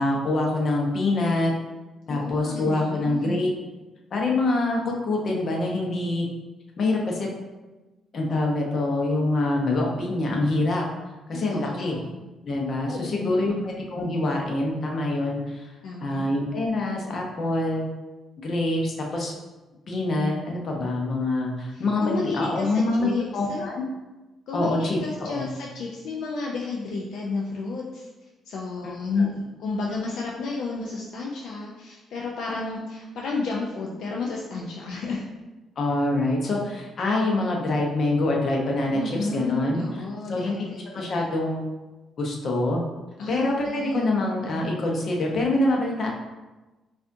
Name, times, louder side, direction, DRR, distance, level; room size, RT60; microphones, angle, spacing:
voice 1, 0.0-1.5 2.1-3.5 4.1-6.3 6.8-7.3 8.1-10.9 11.3-12.0 12.4-15.7 16.0-17.9 18.4-19.3 19.9-23.8 24.5-25.5 28.8-28.9 35.8-39.0 39.3-39.8 40.3-40.7 40.9-41.7 42.2-42.8 43.3-46.1, left 2 dB, 55° left, -1 dB, 0.8 m, -25 dB
voice 2, 2.1-3.4 11.3-12.2 12.9-13.7 15.8-16.3 21.7-23.6 24.5-28.1 28.5-35.2 38.9-41.3 43.2-44.1, left 3 dB, 75° left, -2 dB, 0.5 m, -32 dB
4.8 x 2.5 x 2.6 m, 1.1 s
cardioid pair, 90°, 0 cm